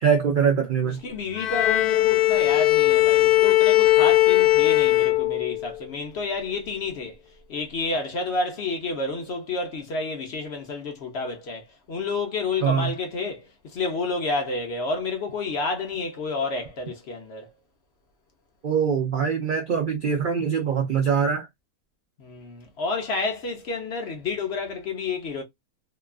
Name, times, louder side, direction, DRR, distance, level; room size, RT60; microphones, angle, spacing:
voice 1, 0.0-1.0 12.6-12.9 18.6-21.5, right 7 dB, 80° right, 0.4 m, -23 dB
voice 2, 1.0-7.2 7.5-13.4 13.7-17.5 22.2-25.4, left 3 dB, 60° left, 0.7 m, -30 dB
Bowed string instrument, 1.4-5.8, left 16 dB, 85° left, 1.1 m, -19 dB
2.8 x 2.3 x 2.2 m
omnidirectional pair, 1.6 m